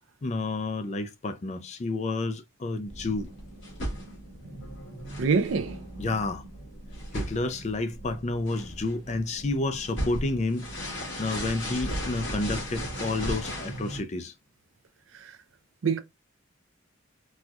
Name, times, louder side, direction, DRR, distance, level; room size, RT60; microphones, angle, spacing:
voice 1, 0.2-3.3 6.0-6.4 7.1-10.7 11.0-14.3, left 2 dB, 35° left, 0.4 m, -30 dB
sound 1, 2.9-14.0, equal, 60° left, 1.7 m, -37 dB
voice 2, 5.2-5.8 15.1-15.4 15.8-16.0, right 5 dB, 70° right, 0.5 m, -26 dB
4.2 x 2.3 x 2.3 m
head